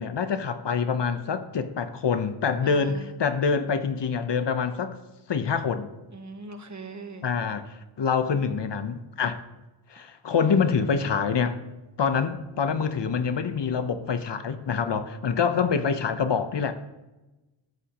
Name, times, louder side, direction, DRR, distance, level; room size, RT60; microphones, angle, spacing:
voice 1, 0.0-4.9 5.3-5.9 7.2-7.6 8.0-9.4 9.9-11.6 12.0-16.8, left 6 dB, 55° left, 0.9 m, -26 dB
voice 2, 2.6-3.1 6.1-7.2, right 3 dB, 35° right, 1.2 m, -40 dB
13.5 x 13.0 x 3.0 m
wide cardioid pair, 155°, 50 cm